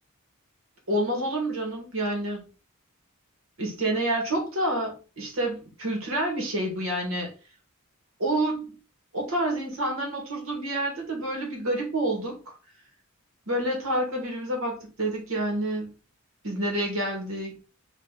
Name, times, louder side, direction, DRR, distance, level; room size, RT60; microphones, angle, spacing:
voice 1, 0.9-2.4 3.6-7.3 8.2-8.7 9.1-12.5 13.5-15.9 16.4-17.6, right 1 dB, 70° right, 0 dB, 1.6 m, -28 dB
3.9 x 2.6 x 3.8 m, 0.35 s
head